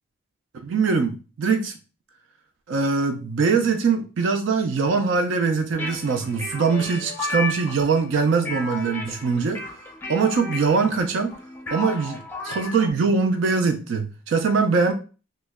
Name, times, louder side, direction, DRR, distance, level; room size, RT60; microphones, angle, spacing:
voice 1, 0.6-1.7 2.7-9.7 10.1-11.3 11.7-14.9, right 5 dB, 70° right, 0.4 m, -22 dB
sound 1, 5.7-12.9, left 3 dB, 10° left, 0.5 m, -33 dB
3.0 x 2.1 x 3.4 m
head